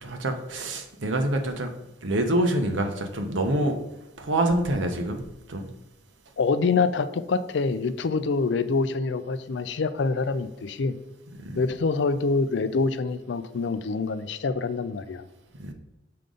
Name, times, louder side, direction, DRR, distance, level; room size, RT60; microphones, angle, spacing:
voice 1, 0.0-1.7 2.0-3.8 4.2-5.2 5.5-5.7 11.4-11.6 15.6-15.7, right 1 dB, 90° right, 0.9 m, -26 dB
voice 2, 6.4-10.9 11.6-15.2, left 4 dB, 70° left, 0.4 m, -26 dB
6.7 x 5.2 x 3.8 m
head